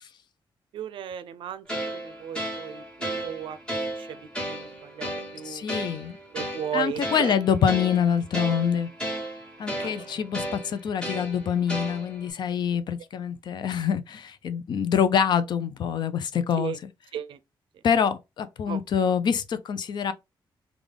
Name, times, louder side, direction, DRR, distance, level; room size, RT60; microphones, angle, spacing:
voice 1, 0.7-3.6 4.0-5.7 6.3-7.4 9.8-10.2 10.5-10.6 16.6-16.8 17.1-17.4 18.7-18.8, right 9 dB, 75° right, 0.4 m, -36 dB
sound 1, 1.7-12.3, right 1 dB, 10° left, 1.3 m, -34 dB
voice 2, 5.4-6.2 6.7-8.9 9.6-16.7 17.8-20.1, left 7 dB, 55° left, 0.5 m, -25 dB
3.8 x 2.3 x 3.3 m
wide cardioid pair, 150°, 9 cm